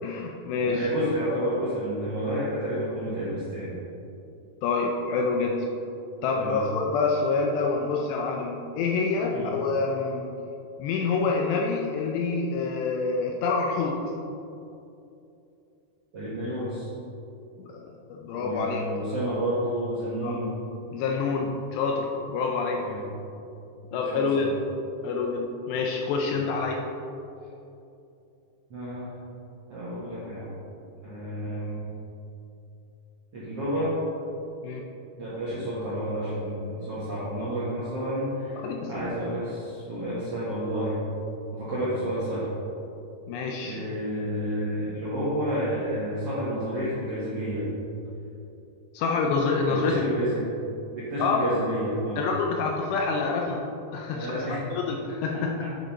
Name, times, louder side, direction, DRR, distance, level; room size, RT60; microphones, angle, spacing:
voice 1, 0.0-0.9 4.6-5.7 6.2-10.3 10.8-14.0 17.6-17.8 18.1-18.8 20.2-20.4 20.9-22.9 23.9-24.5 25.0-26.8 34.6-34.8 38.6-39.1 43.3-43.8 48.9-50.1 51.2-51.5 52.2-53.6 53.9-54.5 54.7-55.6, left 4 dB, 80° left, 1 dB, 2.6 m, -27 dB
voice 2, 0.6-3.8 6.4-6.6 9.2-9.5 16.1-16.9 18.3-20.5 22.8-23.0 23.9-24.4 28.7-29.1 29.7-30.5 31.0-31.9 33.3-33.9 35.2-38.6 38.9-41.0 41.5-42.4 43.6-47.6 49.6-50.5 50.9-52.2 54.1-54.6 55.3-55.7, equal, 60° right, -10 dB, 1.5 m, -30 dB
8.9 x 6.7 x 4.5 m, 2.7 s
omnidirectional pair, 5.4 m